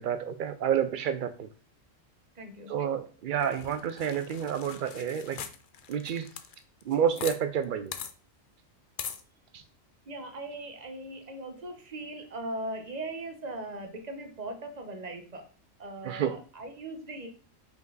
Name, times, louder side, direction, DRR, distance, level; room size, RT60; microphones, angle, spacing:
voice 1, 0.0-1.5 2.7-5.4 5.9-6.3 6.9-7.9 9.5-9.6 16.0-16.4, right 8 dB, 65° right, 10 dB, 0.5 m, -29 dB
voice 2, 2.3-2.7 10.1-15.5 15.8-17.3, right 2 dB, 35° right, 5 dB, 1.0 m, -39 dB
sound 1, 3.4-7.4 7.6-7.7 7.9-8.1 9.0-9.2, left 8 dB, 55° left, 0.6 m, -41 dB
5.3 x 5.1 x 3.9 m, 0.38 s
omnidirectional pair, 1.4 m